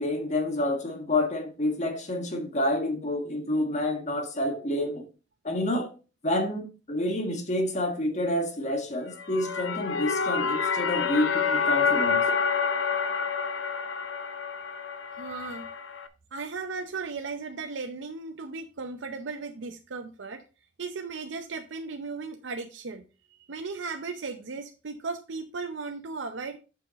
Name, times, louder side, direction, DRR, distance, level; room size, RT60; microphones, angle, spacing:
voice 1, 0.0-5.0 5.4-5.9 6.2-12.3, left 1 dB, 40° left, 1.4 m, -28 dB
sound 1, 9.1-16.1, left 5 dB, 75° left, 0.8 m, -28 dB
voice 2, 15.1-15.7 16.3-20.4 20.8-23.0 23.5-26.6, right 4 dB, 70° right, 0.7 m, -36 dB
6.9 x 5.9 x 4.1 m
head